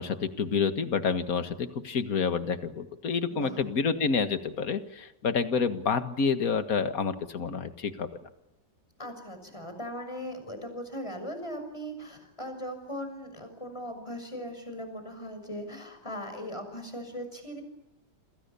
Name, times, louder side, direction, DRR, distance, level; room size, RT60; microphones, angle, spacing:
voice 1, 0.0-8.1, left 5 dB, 55° left, 9 dB, 2.1 m, -28 dB
voice 2, 9.0-17.6, equal, 15° left, 7 dB, 6.4 m, -39 dB
28.5 x 27.0 x 7.0 m, 0.87 s
omnidirectional pair, 1.9 m